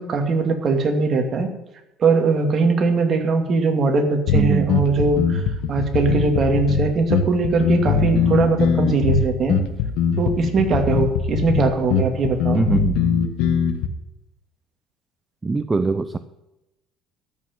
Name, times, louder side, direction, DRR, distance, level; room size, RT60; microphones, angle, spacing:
voice 1, 0.0-1.5 2.0-5.4 5.7-9.6 10.2-12.6, right 4 dB, 40° right, 2.4 m, -20 dB
sound 1, 4.3-13.9, left 6 dB, 80° left, 1.5 m, -21 dB
voice 2, 4.3-4.8 12.5-13.0 15.4-16.2, right 3 dB, 15° right, 0.6 m, -22 dB
13.0 x 6.1 x 8.9 m
cardioid pair, 130°, 0 cm